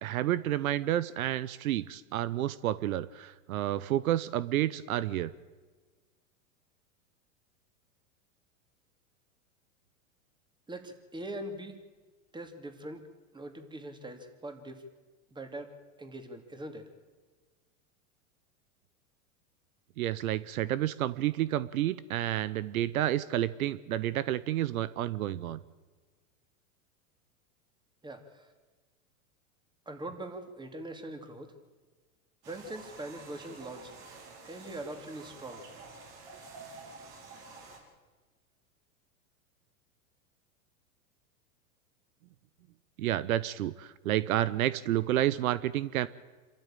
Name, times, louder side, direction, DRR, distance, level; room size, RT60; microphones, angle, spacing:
voice 1, 0.0-5.3 20.0-25.6 43.0-46.1, right 13 dB, 80° right, 17 dB, 0.9 m, -30 dB
voice 2, 10.7-11.8 12.3-13.0 13.3-14.8 15.3-15.7 16.0-16.9 28.0-28.5 29.9-31.5 32.5-34.0 34.4-35.6, right 1 dB, 10° right, 6 dB, 2.6 m, -42 dB
sound 1, 32.4-37.8, right 3 dB, 55° right, 6.4 m, -49 dB
26.5 x 13.5 x 9.1 m, 1.3 s
hypercardioid pair, 115°, 42 cm